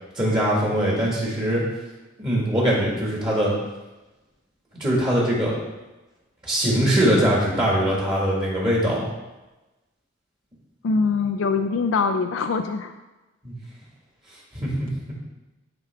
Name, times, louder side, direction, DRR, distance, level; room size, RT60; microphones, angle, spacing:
voice 1, 0.1-1.6 2.2-3.6 4.7-5.6 6.4-9.0 13.4-13.5 14.5-15.1, equal, 25° right, -4 dB, 1.6 m, -22 dB
voice 2, 10.8-12.9, left 4 dB, 75° left, 7 dB, 0.4 m, -23 dB
10.5 x 4.6 x 3.4 m, 1.1 s
head